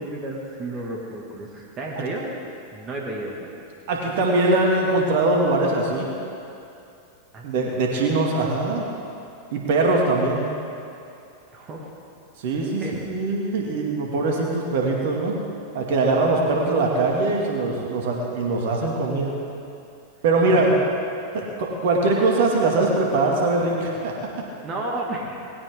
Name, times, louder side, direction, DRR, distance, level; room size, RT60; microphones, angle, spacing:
voice 1, 0.0-2.2 2.7-3.5 7.3-7.9 11.5-11.9 12.8-13.0 20.5-20.8 21.4-21.5 24.6-25.4, right 2 dB, 30° right, -1 dB, 2.3 m, -33 dB
voice 2, 3.9-6.1 7.4-8.8 9.5-10.5 12.4-15.4 15.7-19.3 20.2-20.7 21.3-24.3, right 2 dB, 50° right, -1 dB, 2.5 m, -22 dB
19.5 x 16.5 x 3.9 m, 2.6 s
figure-of-eight pair, 90°, 0 cm